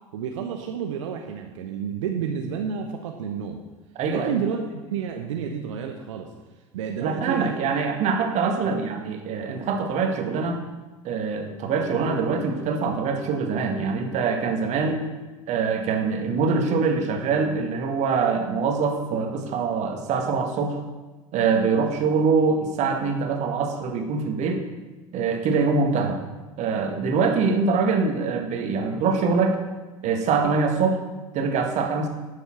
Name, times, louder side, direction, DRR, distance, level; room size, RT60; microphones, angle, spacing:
voice 1, 0.1-3.6 4.1-6.3 6.7-7.5 8.6-8.7, right 7 dB, 65° right, 3 dB, 0.9 m, -30 dB
voice 2, 4.0-4.4 7.0-10.6 11.0-15.0 15.5-20.8 21.3-24.6 25.1-26.2 26.6-29.6 30.0-31.0 31.3-32.1, right 5 dB, 45° right, 3 dB, 1.8 m, -24 dB
11.5 x 7.1 x 6.0 m, 1.2 s
figure-of-eight pair, 70°, 17 cm